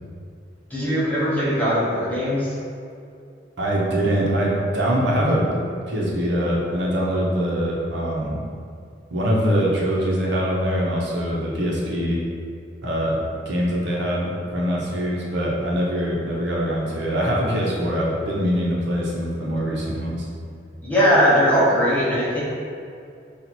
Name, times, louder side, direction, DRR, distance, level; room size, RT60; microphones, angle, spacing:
voice 1, 0.7-2.5 20.8-22.4, equal, 10° left, -10 dB, 0.8 m, -19 dB
voice 2, 3.6-8.4 9.1-12.2 12.8-20.3, equal, 80° right, -4 dB, 0.9 m, -23 dB
4.1 x 2.5 x 4.4 m, 2.4 s
head